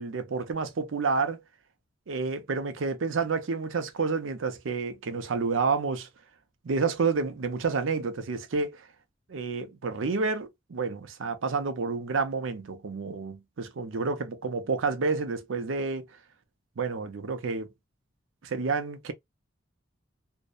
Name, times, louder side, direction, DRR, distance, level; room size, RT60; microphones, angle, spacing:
voice 1, 0.0-1.4 2.1-6.1 6.6-8.9 9.3-16.1 16.8-17.7 18.4-19.1, right 4 dB, 90° right, 0.5 m, -29 dB
2.6 x 2.1 x 2.3 m
head